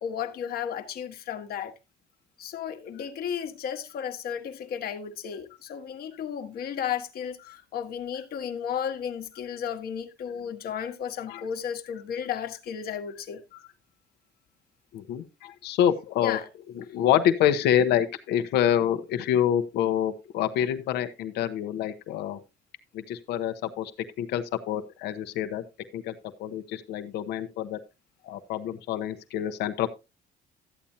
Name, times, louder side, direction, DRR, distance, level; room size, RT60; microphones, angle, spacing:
voice 1, 0.0-1.7 2.4-13.4 16.2-16.5, left 8 dB, 65° left, 1.4 m, -34 dB
voice 2, 14.9-16.4 16.9-22.4 22.9-23.9 24.2-25.6 25.9-27.8 28.2-29.9, left 10 dB, 80° left, 1.0 m, -27 dB
13.0 x 8.7 x 2.7 m
cardioid pair, 110°, 17 cm